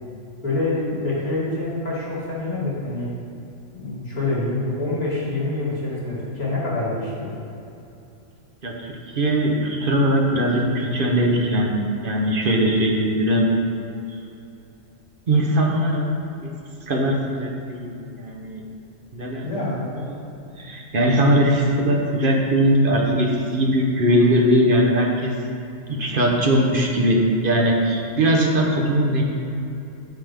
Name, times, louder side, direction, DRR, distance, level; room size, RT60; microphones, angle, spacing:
voice 1, 0.4-3.1 3.7-7.3 19.4-19.8, left 2 dB, 30° left, -8 dB, 2.1 m, -26 dB
voice 2, 8.6-13.5 15.3-16.1 16.4-16.5 16.9-18.6 19.1-19.5 20.0-20.3 20.6-25.3 25.9-29.2, right 1 dB, 45° right, 0 dB, 1.0 m, -20 dB
8.9 x 5.7 x 3.5 m, 2.8 s
omnidirectional pair, 1.3 m